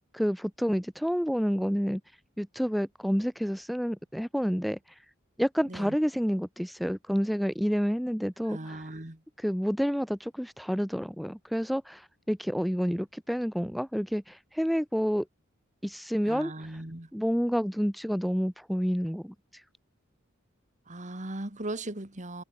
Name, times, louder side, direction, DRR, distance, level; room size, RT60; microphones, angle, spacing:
voice 1, 0.1-2.0 2.4-4.8 5.4-8.9 9.4-15.2 15.8-16.8 17.1-19.6, equal, ahead, 0.8 m, -29 dB
voice 2, 8.4-9.2 16.3-17.1 20.9-22.4, right 1 dB, 35° right, 2.4 m, -38 dB
head